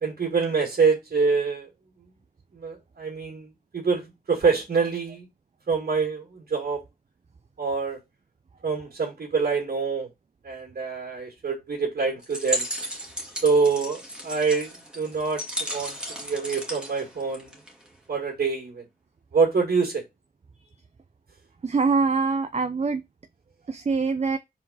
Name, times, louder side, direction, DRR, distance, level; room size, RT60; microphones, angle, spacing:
voice 1, 0.0-1.7 2.5-3.5 3.7-5.2 5.7-6.8 7.6-8.0 8.6-10.1 10.4-12.7 13.4-17.6 18.1-18.8 19.3-20.0, right 5 dB, 80° right, 2.2 m, -25 dB
sound 1, 12.2-17.9, equal, 5° right, 1.9 m, -34 dB
voice 2, 21.6-23.0 23.7-24.4, right 4 dB, 45° right, 0.6 m, -24 dB
5.0 x 3.7 x 5.6 m
wide cardioid pair, 75°, 15 cm